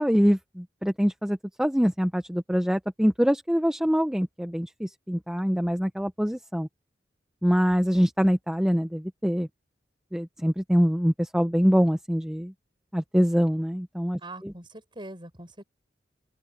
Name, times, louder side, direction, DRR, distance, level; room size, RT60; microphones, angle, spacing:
voice 1, 0.0-6.7 7.4-9.5 10.1-12.5 12.9-14.5, equal, 5° right, 0.8 m, -24 dB
voice 2, 14.2-15.6, right 2 dB, 30° right, 7.9 m, -42 dB
open air
head